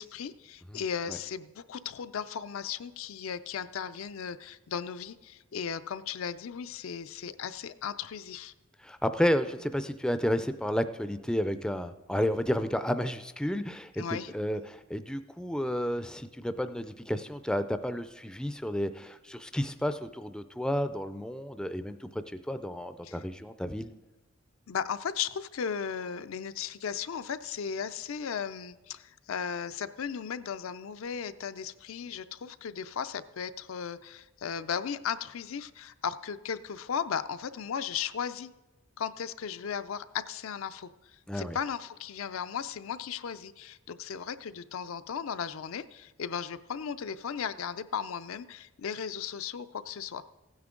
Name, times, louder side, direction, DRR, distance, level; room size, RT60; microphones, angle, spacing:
voice 1, 0.0-8.5 14.0-14.3 23.0-23.2 24.7-38.5 39.0-40.9 41.3-50.2, left 7 dB, 80° left, 11 dB, 0.5 m, -36 dB
voice 2, 8.8-14.0 14.3-23.9 41.3-41.6, equal, 5° left, 10 dB, 0.4 m, -31 dB
16.0 x 9.5 x 3.8 m, 1.1 s
head